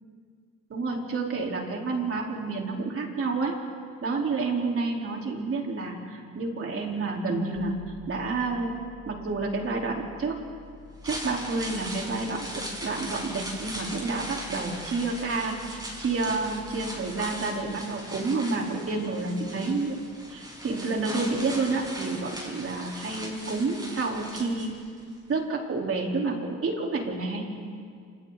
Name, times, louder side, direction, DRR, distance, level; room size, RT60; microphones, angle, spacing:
voice 1, 0.7-3.5 4.0-7.7 8.1-8.7 9.1-10.4 11.0-20.0 20.3-24.7 25.3-27.4, right 3 dB, 45° right, -1 dB, 4.6 m, -29 dB
sound 1, 7.5-17.3, left 4 dB, 40° left, 4.3 m, -50 dB
sound 2, 10.8-25.0 25.3-25.4, equal, 15° right, 7.4 m, -39 dB
28.5 x 28.0 x 4.3 m, 2.2 s
cardioid pair, 90°, 30 cm